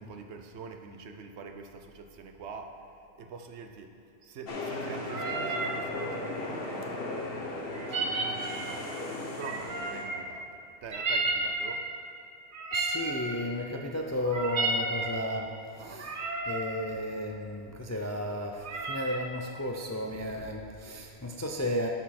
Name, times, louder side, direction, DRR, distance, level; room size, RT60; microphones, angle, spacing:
voice 1, 0.0-2.9 3.2-3.9 4.2-7.0 7.9-9.0 9.4-11.9 15.8-16.2, right 5 dB, 75° right, 5 dB, 1.0 m, -44 dB
sound 1, 4.5-10.1, left 2 dB, 55° left, 1.1 m, -37 dB
sound 2, 5.1-5.8 7.7-8.8 9.4-10.3 10.9-11.9 12.5-13.4 14.2-15.2 15.9-16.7 18.6-19.3, right 2 dB, 50° right, 0.9 m, -32 dB
voice 2, 12.7-15.5 15.8-16.1 16.5-21.9, left 1 dB, 25° left, 1 dB, 0.3 m, -33 dB
11.5 x 6.2 x 4.2 m, 2.7 s
omnidirectional pair, 1.2 m